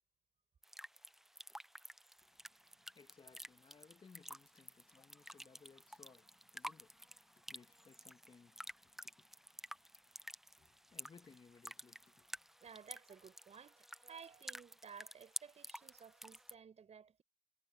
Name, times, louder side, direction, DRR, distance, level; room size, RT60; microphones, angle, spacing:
sound 1, 0.6-16.5, equal, ahead, 0.7 m, -52 dB
voice 1, 2.2-10.3 10.6-12.5, left 5 dB, 30° left, 2.5 m, -64 dB
voice 2, 12.6-17.2, right 7 dB, 40° right, 6.9 m, -56 dB
cardioid pair, 110°, 17 cm